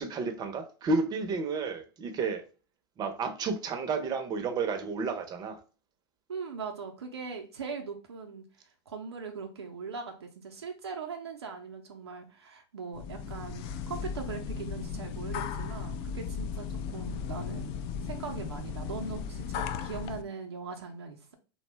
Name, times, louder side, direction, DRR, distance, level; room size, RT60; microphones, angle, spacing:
voice 1, 0.0-2.4 3.0-5.6, right 4 dB, 30° right, 0.6 m, -31 dB
voice 2, 6.3-21.3, right 5 dB, 85° right, 0.5 m, -40 dB
sound 1, 12.9-20.2, left 6 dB, 45° left, 0.4 m, -36 dB
2.7 x 2.1 x 3.2 m
hypercardioid pair, 100°, 13 cm